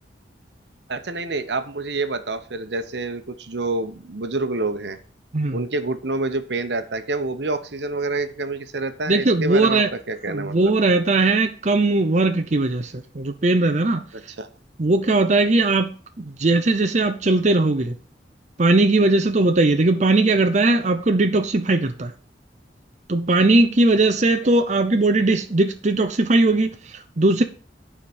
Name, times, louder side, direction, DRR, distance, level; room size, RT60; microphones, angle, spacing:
voice 1, 0.9-5.0 5.5-10.7 14.1-14.5 24.4-24.5, right 3 dB, 75° right, 1.0 m, -27 dB
voice 2, 9.1-9.9 10.3-14.0 14.8-15.9 16.2-17.9 18.6-22.1 23.1-26.7 27.2-27.4, right 2 dB, 40° right, 0.7 m, -19 dB
9.4 x 5.0 x 7.2 m
head